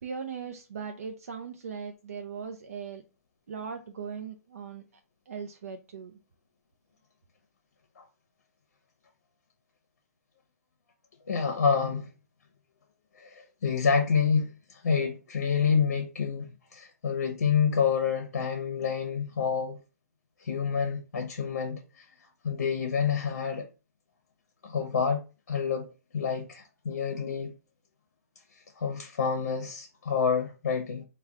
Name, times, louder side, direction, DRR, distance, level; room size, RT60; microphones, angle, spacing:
voice 1, 0.0-3.0 3.5-4.8 5.3-6.1, right 6 dB, 65° right, 0.5 m, -39 dB
voice 2, 11.3-12.1 13.2-19.8 20.4-22.1 22.4-23.7 24.6-25.2 25.5-25.9 26.1-27.5 28.7-31.0, left 6 dB, 70° left, 0.7 m, -28 dB
3.4 x 2.2 x 3.6 m
hypercardioid pair, 170°, 9 cm